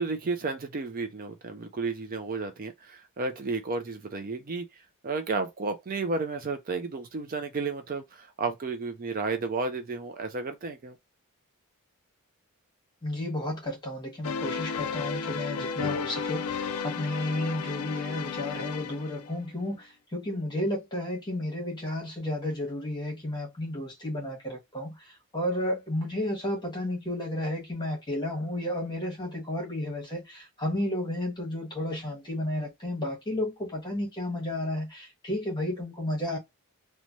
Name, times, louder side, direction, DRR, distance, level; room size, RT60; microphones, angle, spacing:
voice 1, 0.0-11.0, right 4 dB, 40° right, 0.4 m, -32 dB
voice 2, 13.0-24.9 25.3-36.4, left 1 dB, 20° left, 1.1 m, -32 dB
sound 1, 14.2-19.4, left 5 dB, 75° left, 0.3 m, -33 dB
3.0 x 2.2 x 2.5 m
head